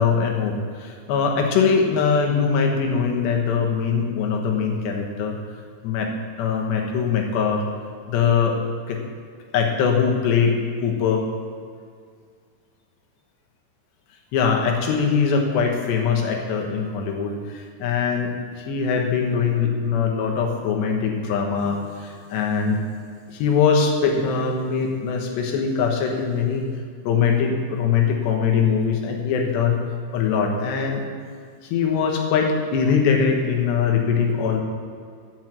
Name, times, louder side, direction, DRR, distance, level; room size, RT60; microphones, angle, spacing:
voice 1, 0.0-5.4 5.8-6.1 6.4-7.6 8.1-8.6 8.9-9.0 9.5-11.2 14.3-22.8 23.3-26.7 27.0-29.8 30.1-31.0 31.6-34.6, left 6 dB, 75° left, 1 dB, 3.3 m, -22 dB
12.5 x 6.0 x 7.8 m, 2.1 s
omnidirectional pair, 5.3 m